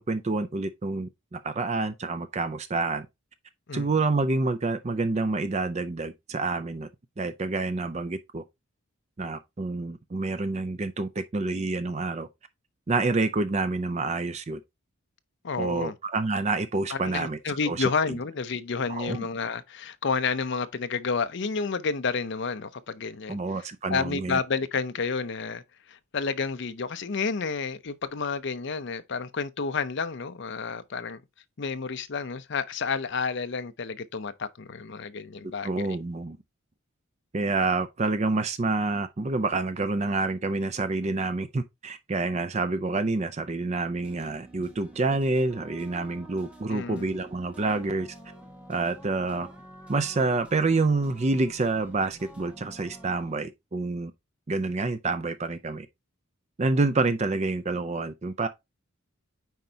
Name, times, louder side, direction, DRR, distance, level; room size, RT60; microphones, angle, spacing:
voice 1, 0.0-3.1 3.7-6.9 7.2-8.4 9.2-12.3 12.9-14.6 15.6-17.4 17.7-17.9 18.9-19.3 23.3-24.4 35.6-36.4 37.3-48.1 48.7-49.5 49.9-54.1 54.5-55.9 56.6-58.5, right 3 dB, 30° right, 0.4 m, -28 dB
voice 2, 15.4-15.9 16.9-23.4 23.9-31.2 31.6-35.7 46.7-47.1, left 5 dB, 55° left, 0.6 m, -30 dB
sound 1, 44.0-53.3, right 1 dB, 5° right, 1.2 m, -49 dB
9.2 x 4.5 x 2.8 m
head